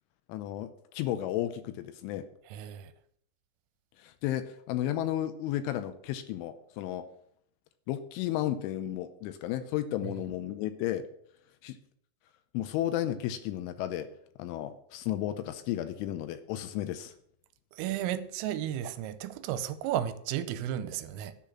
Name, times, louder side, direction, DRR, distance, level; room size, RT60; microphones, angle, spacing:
voice 1, 0.3-0.7 0.9-2.2 4.0-7.0 7.9-11.0 11.6-11.8 12.5-14.1 14.4-17.1, left 12 dB, 80° left, 3.0 m, -33 dB
voice 2, 2.5-2.9 10.0-10.1 17.7-21.4, right 11 dB, 90° right, 3.3 m, -33 dB
10.0 x 5.9 x 8.6 m
omnidirectional pair, 5.9 m